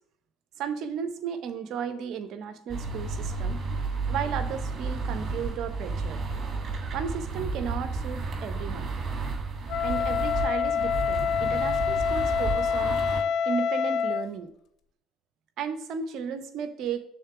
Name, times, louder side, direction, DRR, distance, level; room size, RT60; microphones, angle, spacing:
voice 1, 0.6-3.6 4.1-6.2 6.9-8.9 9.8-13.0 13.4-14.5 15.6-17.0, right 7 dB, 60° right, 10 dB, 0.8 m, -34 dB
sound 1, 2.7-13.2, right 3 dB, 40° right, 1.6 m, -32 dB
Wind instrument woodwind instrument, 9.7-14.3, left 7 dB, 55° left, 0.4 m, -26 dB
6.5 x 3.8 x 5.9 m, 0.70 s
hypercardioid pair, 60°, 0 cm